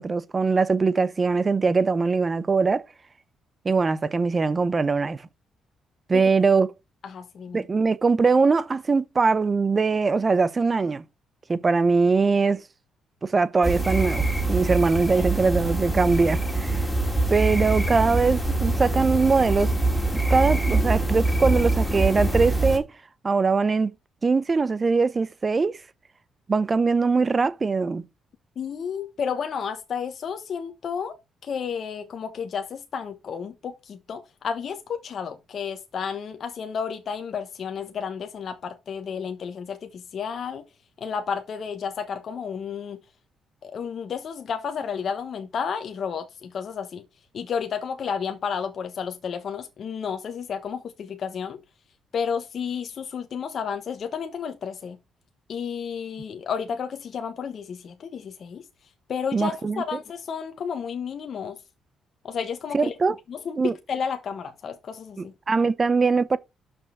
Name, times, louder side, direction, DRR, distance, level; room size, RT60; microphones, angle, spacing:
voice 1, 0.0-2.9 3.6-5.2 6.1-6.7 7.5-11.0 11.5-12.6 13.2-16.8 17.3-19.7 20.1-22.9 23.2-23.9 24.2-25.8 26.5-28.0 59.3-59.8 62.7-63.1 63.6-63.7 65.2-66.4, right 4 dB, 30° right, 0.6 m, -22 dB
voice 2, 7.0-7.6 15.1-15.3 28.6-31.2 31.4-40.6 41.0-43.0 43.6-47.0 47.3-51.6 52.1-55.0 55.5-58.6 59.1-61.6 62.2-62.9 63.3-65.3, left 6 dB, 55° left, 1.1 m, -32 dB
sound 1, 13.6-22.8, right 2 dB, 5° left, 2.3 m, -24 dB
6.1 x 5.2 x 6.3 m
cardioid pair, 90°, 0 cm